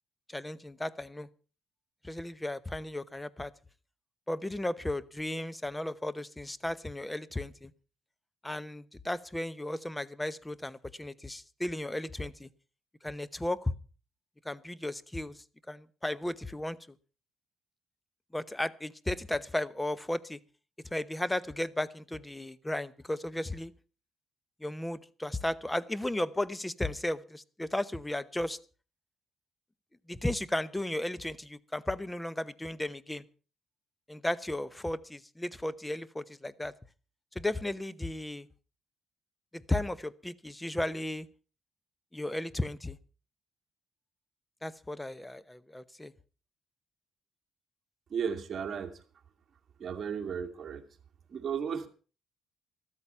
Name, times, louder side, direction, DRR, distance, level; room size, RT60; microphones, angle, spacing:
voice 1, 0.3-1.3 2.0-3.5 4.3-7.7 8.4-12.5 13.0-13.7 14.4-15.4 15.7-16.8 18.3-20.4 20.9-23.7 24.6-28.6 30.1-33.2 34.1-36.7 37.3-38.5 39.5-41.3 42.1-43.0 44.6-46.1, left 1 dB, 10° left, 18 dB, 0.9 m, -35 dB
voice 2, 48.1-49.0 49.8-50.8 51.3-51.9, right 7 dB, 50° right, 3 dB, 2.4 m, -34 dB
14.0 x 13.0 x 5.6 m, 0.38 s
cardioid pair, 90°, 0 cm